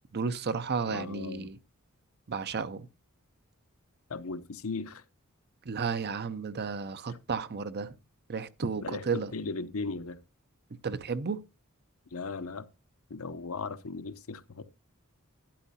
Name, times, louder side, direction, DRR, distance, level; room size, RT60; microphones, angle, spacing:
voice 1, 0.1-1.6 2.3-2.9 5.6-8.0 8.3-9.3 10.8-11.4, right 5 dB, 50° right, 0.6 m, -33 dB
voice 2, 0.9-1.5 4.1-5.0 7.1-7.2 8.8-9.0 9.3-10.2 12.1-12.7 13.1-14.6, left 4 dB, 70° left, 0.8 m, -37 dB
12.0 x 10.0 x 2.8 m
head